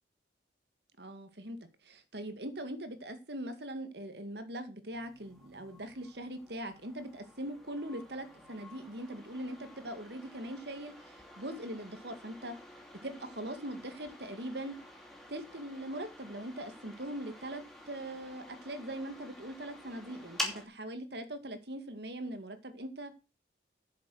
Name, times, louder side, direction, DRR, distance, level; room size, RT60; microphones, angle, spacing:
voice 1, 1.0-1.6 1.8-12.5 13.0-14.8 15.3-23.1, right 1 dB, 65° right, 2.0 m, -41 dB
sound 1, 4.9-20.7, left 1 dB, ahead, 2.7 m, -48 dB
10.5 x 7.6 x 6.4 m
head